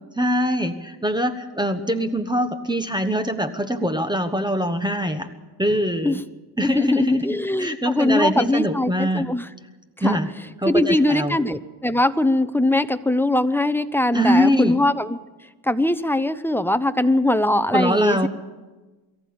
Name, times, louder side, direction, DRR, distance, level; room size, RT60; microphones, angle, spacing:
voice 1, 0.2-5.3 5.6-6.2 6.6-9.3 10.0-10.3 10.6-11.4 14.1-14.8 17.7-18.3, equal, 10° right, 9 dB, 1.3 m, -23 dB
voice 2, 6.6-9.5 10.0-10.2 10.7-15.2 15.6-18.3, left 1 dB, 5° left, 11 dB, 0.8 m, -21 dB
23.0 x 14.5 x 8.7 m, 1.2 s
cardioid pair, 105°, 42 cm